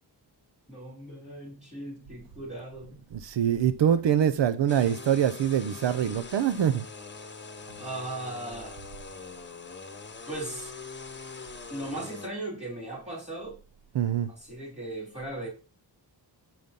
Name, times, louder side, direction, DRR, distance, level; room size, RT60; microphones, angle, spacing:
voice 1, 0.7-3.0 7.8-8.8 10.3-10.8 11.7-13.6 14.4-15.5, right 1 dB, 15° right, 3.4 m, -38 dB
voice 2, 3.1-6.8 13.9-14.3, right 9 dB, 85° right, 0.7 m, -24 dB
sound 1, 4.7-12.3, left 4 dB, 25° left, 0.9 m, -43 dB
7.7 x 5.6 x 5.3 m
wide cardioid pair, 180°, 42 cm